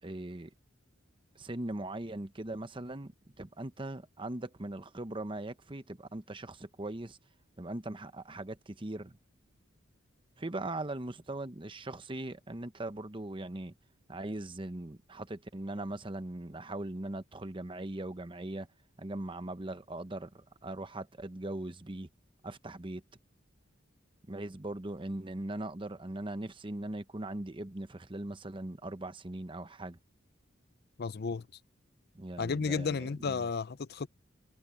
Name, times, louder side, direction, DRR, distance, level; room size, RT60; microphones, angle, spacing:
voice 1, 0.0-0.5 1.3-7.2 7.6-9.2 10.4-13.7 14.1-18.7 19.0-22.1 22.4-23.0 24.3-30.0 32.1-33.5, right 1 dB, 25° right, 0.9 m, -40 dB
voice 2, 31.0-31.5 32.4-34.1, left 5 dB, 55° left, 0.5 m, -33 dB
head